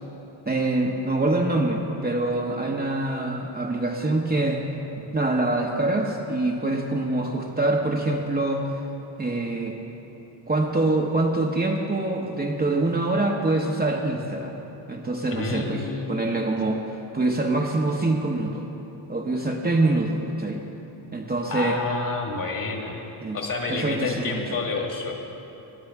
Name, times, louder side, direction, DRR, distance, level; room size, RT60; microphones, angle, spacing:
voice 1, 0.5-4.6 5.1-8.6 9.2-9.8 10.5-14.6 14.9-15.8 16.1-18.7 19.1-20.6 21.1-21.8 23.2-23.4 23.7-24.4, right 2 dB, 20° right, 0 dB, 0.9 m, -25 dB
voice 2, 15.3-16.5 21.5-23.0 23.3-25.1, left 3 dB, 40° left, 1 dB, 1.9 m, -29 dB
16.0 x 9.4 x 3.5 m, 3.0 s
cardioid pair, 80°, 49 cm